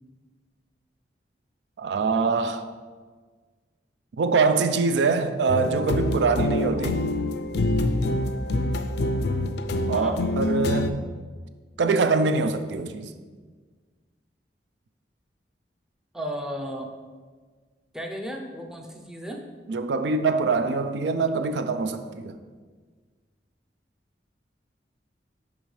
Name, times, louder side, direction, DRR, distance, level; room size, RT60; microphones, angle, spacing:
voice 1, 1.8-2.6 4.2-7.0 9.9-11.0 11.8-13.1 19.7-22.4, right 4 dB, 80° right, 9 dB, 0.4 m, -24 dB
sound 1, 5.5-10.9, left 2 dB, 65° left, 0.4 m, -26 dB
voice 2, 16.1-16.9 17.9-19.4, equal, 5° right, 2 dB, 0.5 m, -34 dB
10.5 x 3.6 x 3.2 m, 1.5 s
head